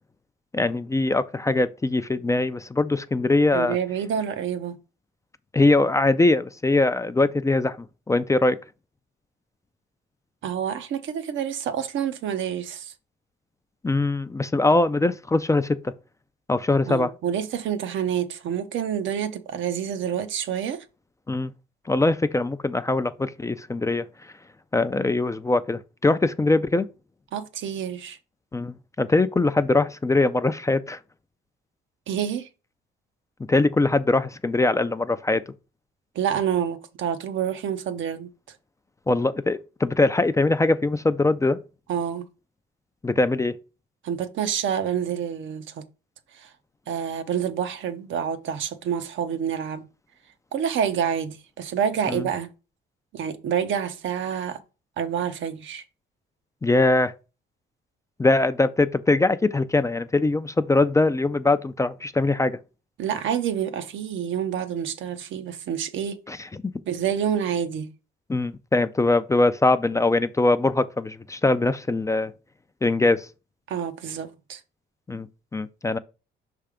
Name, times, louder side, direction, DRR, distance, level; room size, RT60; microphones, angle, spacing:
voice 1, 0.5-3.8 5.5-7.8 8.1-8.6 13.8-15.9 16.5-17.1 21.3-21.5 21.9-24.1 24.7-26.9 28.5-31.0 33.5-35.4 39.1-41.6 43.0-43.5 52.1-52.2 56.6-57.1 58.2-62.6 66.3-66.5 68.3-72.3 72.8-73.3 75.1-76.0, left 2 dB, 15° left, 0.4 m, -22 dB
voice 2, 3.5-4.8 10.4-12.9 16.9-20.8 27.3-28.2 32.1-32.5 36.1-38.3 41.9-42.3 44.0-45.8 46.3-46.5 46.9-49.8 50.5-52.5 53.1-54.6 55.0-55.8 63.0-66.2 66.9-67.9 73.7-74.6, right 8 dB, 75° right, 0.9 m, -28 dB
5.6 x 3.4 x 4.9 m
cardioid pair, 90°, 20 cm